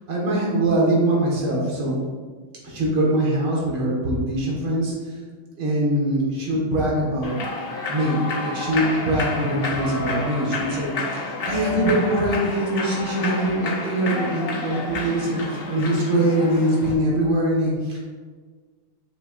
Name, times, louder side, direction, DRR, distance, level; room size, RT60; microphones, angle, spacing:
voice 1, 0.1-2.0 2.6-5.2 5.6-7.4 7.9-18.1, right 1 dB, 80° right, -4 dB, 2.7 m, -23 dB
Human voice / Clapping / Cheering, 7.2-16.9, left 2 dB, 90° left, 0.5 m, -30 dB
7.0 x 6.3 x 2.6 m, 1.5 s
omnidirectional pair, 2.3 m